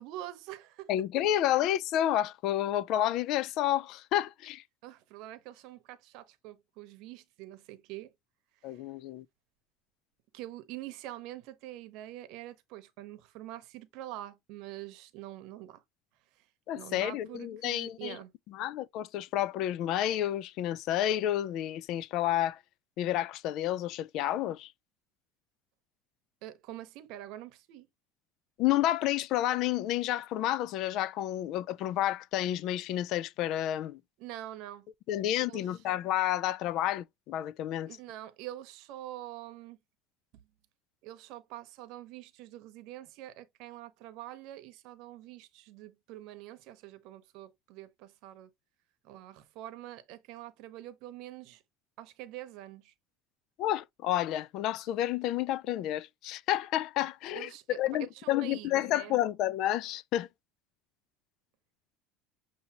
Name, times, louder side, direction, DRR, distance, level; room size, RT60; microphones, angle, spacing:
voice 1, 0.0-0.9 4.8-8.1 8.7-8.8 10.3-15.8 16.4-16.5 16.7-18.3 26.4-27.9 34.2-34.9 35.4-35.8 37.8-39.8 40.3-40.4 41.0-48.5 49.0-51.6 52.0-52.9 57.3-57.8 58.1-59.2, right 14 dB, 65° right, 0.9 m, -45 dB
voice 2, 0.9-4.6 8.6-9.3 16.7-18.2 18.5-22.6 23.0-24.7 28.6-34.0 35.1-38.0 53.6-60.3, left 12 dB, 55° left, 0.3 m, -30 dB
6.9 x 2.7 x 2.8 m
cardioid pair, 140°, 0 cm